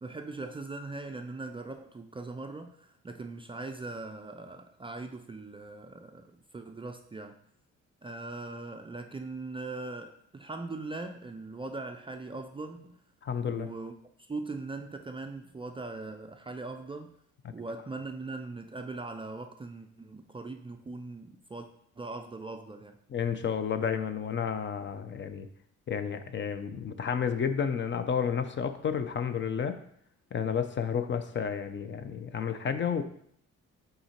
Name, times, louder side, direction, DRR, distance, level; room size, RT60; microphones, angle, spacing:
voice 1, 0.0-7.4 8.0-13.0 13.5-13.9 14.2-17.2 17.5-21.7 22.0-23.0, right 3 dB, 20° right, 5 dB, 0.4 m, -40 dB
voice 2, 13.2-13.7 23.1-25.5 25.9-29.8 30.3-33.0, left 7 dB, 40° left, 10 dB, 0.5 m, -31 dB
5.5 x 3.8 x 4.4 m, 0.68 s
cardioid pair, 90°, 30 cm